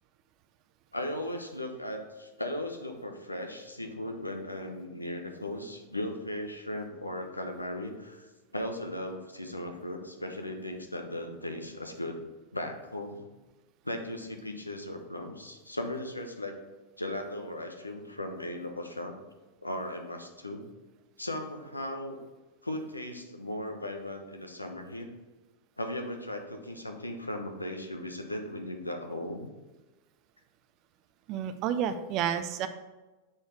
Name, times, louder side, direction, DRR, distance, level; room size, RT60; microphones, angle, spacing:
voice 1, 0.9-12.2 12.5-13.2 13.8-16.6 17.0-19.1 19.6-20.6 21.2-22.2 22.6-25.1 25.8-29.5, left 1 dB, 85° left, 4 dB, 0.7 m, -37 dB
voice 2, 31.3-32.7, right 9 dB, 40° right, 10 dB, 0.5 m, -30 dB
6.6 x 3.9 x 4.6 m, 1.1 s
figure-of-eight pair, 90°, 0 cm